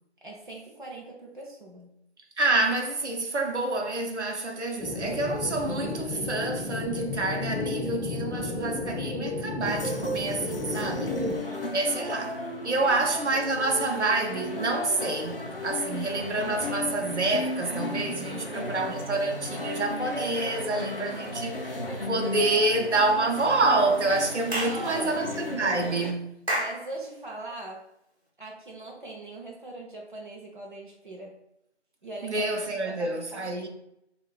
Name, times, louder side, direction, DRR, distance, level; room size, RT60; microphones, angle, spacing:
voice 1, 0.2-2.0 11.1-11.6 12.8-13.0 13.3-13.4 18.1-18.8 24.6-25.2 26.5-27.9 28.4-31.4 32.0-32.5 32.8-33.6, right 2 dB, 45° right, 0.6 m, -41 dB
voice 2, 2.4-11.1 11.7-12.4 12.6-21.8 22.1-26.3 32.2-33.7, right 2 dB, 85° right, 0.7 m, -27 dB
sound 1, 4.8-11.4, left 2 dB, ahead, 0.4 m, -32 dB
sound 2, 9.7-26.1, left 2 dB, 55° left, 0.5 m, -35 dB
Clapping / Chirp tweet, 24.5-24.8 26.5-26.8, right 1 dB, 65° right, 0.9 m, -28 dB
3.0 x 2.3 x 3.5 m
figure-of-eight pair, 180°, 34 cm